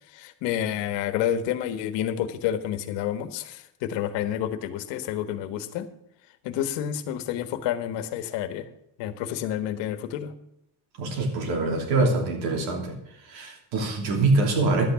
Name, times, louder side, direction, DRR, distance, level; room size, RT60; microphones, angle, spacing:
voice 1, 0.1-5.9 6.4-8.7 9.0-10.3, left 10 dB, 65° left, 10 dB, 1.5 m, -29 dB
voice 2, 11.0-13.0 13.3-14.9, right 3 dB, 80° right, 4 dB, 3.2 m, -24 dB
11.5 x 8.6 x 6.9 m, 0.79 s
cardioid pair, 140°, 46 cm